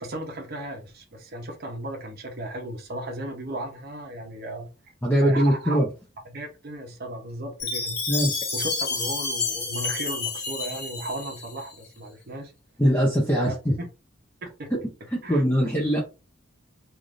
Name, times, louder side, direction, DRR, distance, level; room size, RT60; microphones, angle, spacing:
voice 1, 0.0-4.9 5.2-5.8 6.3-8.0 8.5-12.5 13.4-13.9 14.6-14.7 15.2-15.4, right 1 dB, 50° right, 0.7 m, -35 dB
voice 2, 5.0-5.9 8.1-8.3 12.8-13.8 14.7-14.8 15.1-16.0, equal, 10° left, 0.5 m, -22 dB
Chime, 7.6-11.7, left 4 dB, 50° left, 1.1 m, -30 dB
3.3 x 2.5 x 2.5 m
head